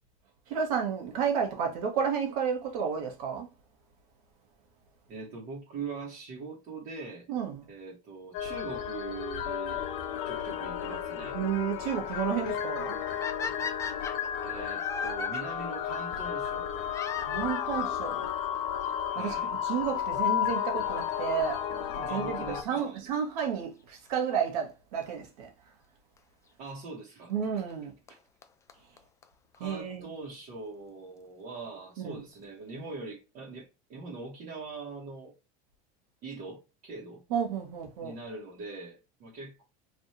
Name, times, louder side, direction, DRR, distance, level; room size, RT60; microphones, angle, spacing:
voice 1, 0.5-3.5 7.3-7.6 11.3-13.0 17.1-18.3 19.1-22.4 22.6-25.5 27.3-27.9 29.6-30.1 32.0-32.2 37.3-38.1, right 7 dB, 85° right, 1.5 m, -31 dB
voice 2, 5.1-7.3 7.7-9.8 10.2-11.4 14.4-16.7 19.1-19.5 22.1-22.9 26.6-27.3 28.1-28.2 29.5-35.3 36.2-37.2 38.0-39.6, right 4 dB, 50° right, 1.3 m, -42 dB
sound 1, 8.3-22.6, left 9 dB, 65° left, 0.8 m, -33 dB
sound 2, 13.2-15.4 16.9-18.0 18.9-19.0 19.7-19.8 20.0-20.1 22.0-22.2 25.0-25.1 26.2-26.3 27.7-27.8 28.1-28.2 28.4-28.5 28.7-28.8 29.0-29.1 29.2-29.3 29.5-29.6, left 6 dB, 15° left, 0.3 m, -36 dB
3.3 x 2.6 x 4.2 m
supercardioid pair, 145°, 19 cm